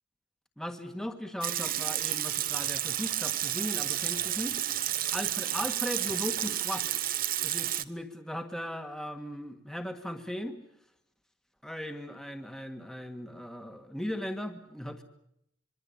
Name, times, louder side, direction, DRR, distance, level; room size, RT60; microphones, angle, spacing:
voice 1, 0.6-7.0 7.4-10.6 11.6-15.0, equal, 5° left, 6 dB, 1.6 m, -38 dB
Water tap faucet / Sink (filling or washing) / Liquid, 1.4-7.8, right 12 dB, 45° right, 1.0 m, -31 dB
26.0 x 23.5 x 8.4 m, 0.74 s
head